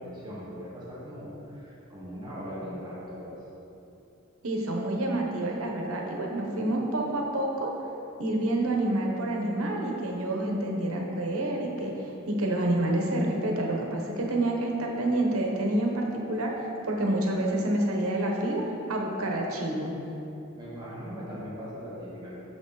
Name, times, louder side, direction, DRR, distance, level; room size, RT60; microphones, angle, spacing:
voice 1, 0.0-3.3 20.5-22.3, equal, 20° right, -7 dB, 1.3 m, -39 dB
voice 2, 4.4-7.7 8.2-11.9 12.3-16.5 16.9-18.6 18.9-19.9, right 1 dB, 90° right, 0 dB, 1.1 m, -28 dB
6.9 x 6.4 x 4.0 m, 2.9 s
head